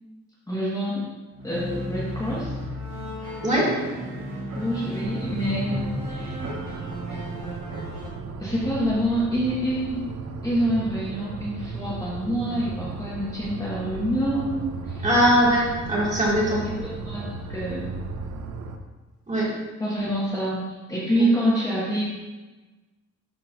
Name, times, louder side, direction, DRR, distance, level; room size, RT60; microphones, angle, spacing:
voice 1, 0.5-1.1 1.4-2.6 3.6-3.7 4.3-6.4 8.4-10.0 10.4-15.1 16.4-18.0 19.8-22.1, equal, 10° left, -8 dB, 1.6 m, -27 dB
sound 1, 1.3-8.1, equal, 50° right, 2.2 m, -34 dB
sound 2, 5.0-18.8, right 3 dB, 65° right, 0.7 m, -35 dB
voice 2, 15.0-16.7 19.3-19.5 21.1-21.2, equal, 25° right, -6 dB, 2.2 m, -21 dB
12.0 x 4.4 x 2.6 m, 1.2 s
wide cardioid pair, 140°, 30 cm